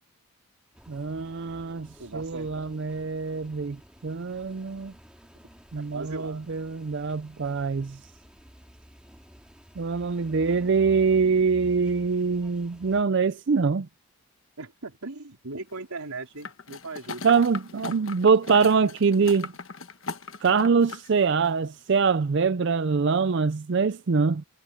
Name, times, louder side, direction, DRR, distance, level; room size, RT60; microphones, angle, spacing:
sound 1, 0.7-13.0, equal, 5° right, 2.8 m, -50 dB
voice 1, 0.9-1.9 2.1-3.8 4.0-4.9 5.7-8.0 9.8-13.9 17.2-19.5 20.4-24.4, right 5 dB, 50° right, 0.4 m, -24 dB
voice 2, 2.0-2.7 5.8-6.5 14.6-17.4, right 3 dB, 85° right, 3.6 m, -38 dB
sound 2, 16.4-21.1 21.4-21.5, left 4 dB, 60° left, 1.2 m, -38 dB
head